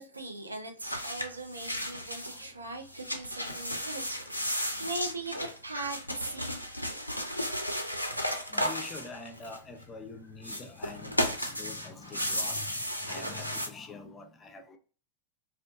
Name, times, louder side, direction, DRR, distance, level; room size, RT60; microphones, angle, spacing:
voice 1, 0.0-7.3, right 2 dB, 80° right, 0.4 m, -40 dB
sound 1, 0.8-2.5 2.8-9.8 10.4-13.7, equal, 90° left, 0.3 m, -34 dB
voice 2, 3.5-3.9 5.7-5.9 8.5-14.8, left 4 dB, 20° left, 0.4 m, -45 dB
2.4 x 2.2 x 2.4 m
figure-of-eight pair, 90°, 0 cm